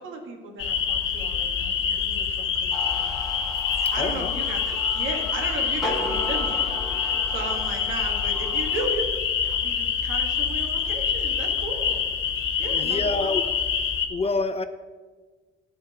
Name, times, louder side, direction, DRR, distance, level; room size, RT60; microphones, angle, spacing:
voice 1, 0.0-3.1 3.7-6.7 6.9-12.1 12.6-13.5, right 3 dB, 80° right, 2 dB, 1.9 m, -36 dB
sound 1, 0.6-14.1, left 7 dB, 80° left, 1.0 m, -26 dB
sound 2, 2.7-8.9, left 1 dB, ahead, 1.9 m, -36 dB
voice 2, 4.0-4.3 12.7-13.5 14.1-14.6, left 3 dB, 30° left, 10 dB, 0.7 m, -27 dB
12.5 x 4.5 x 7.9 m, 1.4 s
cardioid pair, 90°, 20 cm